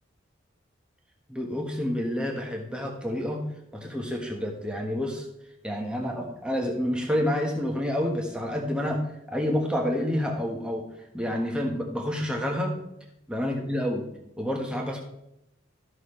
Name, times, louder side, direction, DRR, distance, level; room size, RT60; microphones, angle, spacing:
voice 1, 1.3-3.4 3.7-5.3 5.6-9.0 9.3-10.8 11.1-12.7 13.3-14.1 14.4-15.0, equal, 5° right, 0 dB, 1.4 m, -28 dB
13.0 x 6.5 x 3.3 m, 0.83 s
head